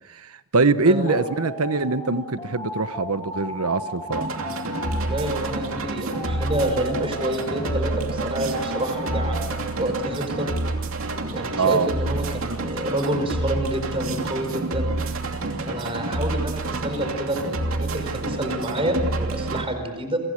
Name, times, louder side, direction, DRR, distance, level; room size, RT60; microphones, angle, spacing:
voice 1, 0.1-4.3 11.6-11.9, right 3 dB, 80° right, 12 dB, 1.2 m, -23 dB
voice 2, 0.8-1.2 4.9-10.5 11.2-14.9 15.7-20.2, right 1 dB, 25° right, 6 dB, 4.7 m, -28 dB
sound 1, 1.0-9.7, left 1 dB, 20° left, 4.9 m, -36 dB
sound 2, 4.1-19.6, right 2 dB, 65° right, 2.8 m, -28 dB
29.5 x 24.5 x 6.6 m, 1.2 s
head